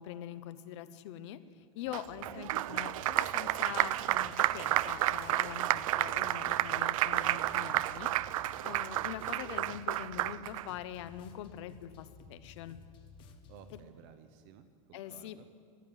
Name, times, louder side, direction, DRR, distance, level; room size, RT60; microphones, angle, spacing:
voice 1, 0.0-1.4 1.7-12.8 13.7-13.8 14.9-15.4, left 11 dB, 60° left, 13 dB, 0.8 m, -44 dB
Applause, 1.9-10.7, right 15 dB, 75° right, 0.4 m, -31 dB
sound 1, 2.0-13.8, left 4 dB, 30° left, 1.0 m, -55 dB
voice 2, 8.2-8.6 13.5-15.4, right 9 dB, 45° right, 9 dB, 0.8 m, -56 dB
14.0 x 11.0 x 8.9 m, 2.2 s
supercardioid pair, 170°, 17 cm